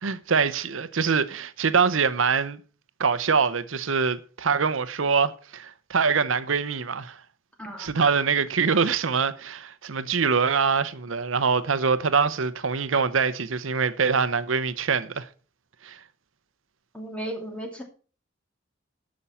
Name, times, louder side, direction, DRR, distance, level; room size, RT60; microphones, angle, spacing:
voice 1, 0.0-2.6 3.0-7.2 7.8-15.3 15.8-16.0, right 5 dB, 85° right, 0.8 m, -24 dB
voice 2, 7.6-7.9 16.9-17.8, right 1 dB, 5° left, 2.4 m, -35 dB
11.0 x 6.3 x 5.7 m
head